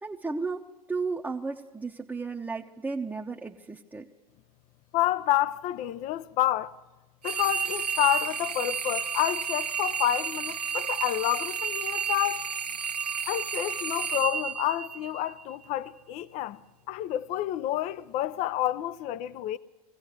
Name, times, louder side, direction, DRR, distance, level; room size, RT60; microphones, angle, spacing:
voice 1, 0.0-4.1, right 4 dB, 5° right, 0.9 m, -34 dB
voice 2, 4.9-6.7 7.2-12.5 13.3-16.6 16.9-19.6, left 14 dB, 35° left, 0.6 m, -29 dB
sound 1, 7.2-15.4, right 7 dB, 85° right, 0.8 m, -31 dB
21.5 x 16.0 x 8.1 m
figure-of-eight pair, 90°, 20 cm